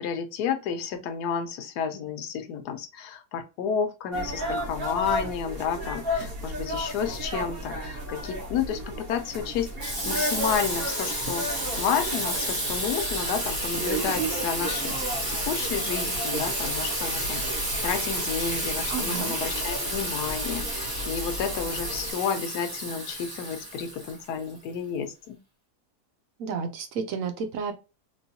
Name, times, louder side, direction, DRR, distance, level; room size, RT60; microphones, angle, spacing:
voice 1, 0.0-25.4, left 7 dB, 85° left, 1.2 m, -31 dB
sound 1, 4.1-22.1, equal, 45° right, 1.1 m, -34 dB
Water tap faucet / Sink (filling or washing), 9.8-24.6, right 1 dB, 20° right, 0.8 m, -31 dB
voice 2, 18.9-19.4 26.4-27.7, right 6 dB, 65° right, 0.9 m, -31 dB
3.0 x 3.0 x 2.7 m
omnidirectional pair, 1.7 m